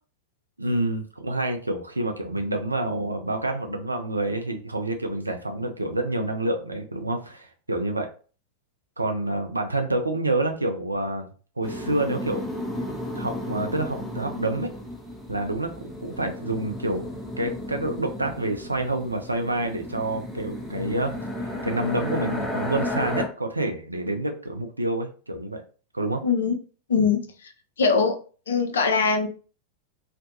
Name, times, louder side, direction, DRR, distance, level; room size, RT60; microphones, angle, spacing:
voice 1, 0.6-8.1 9.0-11.3 11.6-12.4 13.1-14.7 15.3-17.1 17.4-21.1 21.6-25.6 25.9-26.2, right 2 dB, 85° right, 4 dB, 0.4 m, -28 dB
sound 1, 11.6-23.3, left 1 dB, 5° right, 0.6 m, -33 dB
voice 2, 26.2-26.6 26.9-27.5 27.8-28.2 28.5-29.3, left 5 dB, 65° left, 6 dB, 0.4 m, -22 dB
2.4 x 2.2 x 2.7 m, 0.38 s
figure-of-eight pair, 90°, 0 cm